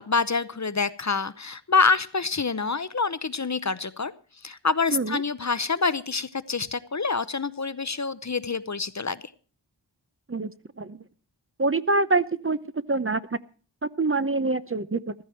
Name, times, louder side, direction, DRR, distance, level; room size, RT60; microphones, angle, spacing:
voice 1, 0.0-4.1 4.4-9.2, left 4 dB, 40° left, 15 dB, 0.8 m, -26 dB
voice 2, 11.6-13.2 13.8-15.1, right 3 dB, 30° right, 13 dB, 0.7 m, -25 dB
15.0 x 13.5 x 4.4 m, 0.40 s
wide cardioid pair, 50°, 44 cm